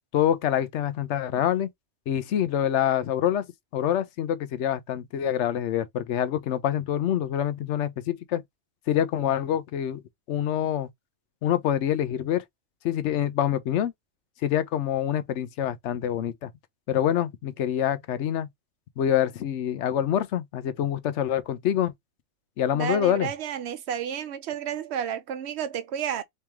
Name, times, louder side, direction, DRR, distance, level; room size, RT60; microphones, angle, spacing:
voice 1, 0.1-1.7 2.1-3.4 3.7-8.4 8.9-10.0 10.3-10.9 11.4-12.4 12.8-13.9 14.4-16.5 16.9-18.5 19.0-21.9 22.6-23.3, left 10 dB, 80° left, 0.9 m, -26 dB
voice 2, 22.7-26.2, right 9 dB, 75° right, 0.9 m, -31 dB
3.3 x 3.0 x 3.4 m
omnidirectional pair, 1.2 m